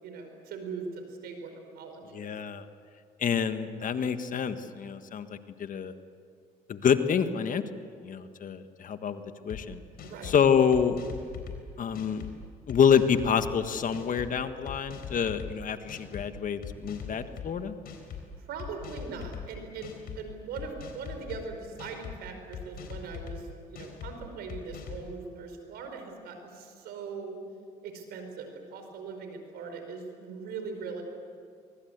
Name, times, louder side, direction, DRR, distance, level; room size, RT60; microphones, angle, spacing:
voice 1, 0.0-2.3 10.0-10.4 18.4-27.4 27.8-31.0, right 4 dB, 80° right, 5 dB, 5.0 m, -40 dB
voice 2, 2.1-2.6 3.2-5.9 6.7-7.6 8.0-9.8 10.2-11.0 11.8-12.2 12.7-17.7, left 7 dB, 55° left, 9 dB, 1.6 m, -27 dB
sound 1, 9.5-9.6 10.0-10.4 10.7-11.6 11.9-12.3 12.7-13.5 13.9-14.3 14.7-15.5 15.9-16.2 16.6-17.5 17.9-18.2 18.6-19.4 19.8-20.2 20.6-21.4 21.8-22.2 22.5-23.4 23.8-24.1 24.5-25.0, left 8 dB, 70° left, 4.2 m, -41 dB
23.5 x 23.0 x 8.1 m, 2.2 s
supercardioid pair, 65°, 16 cm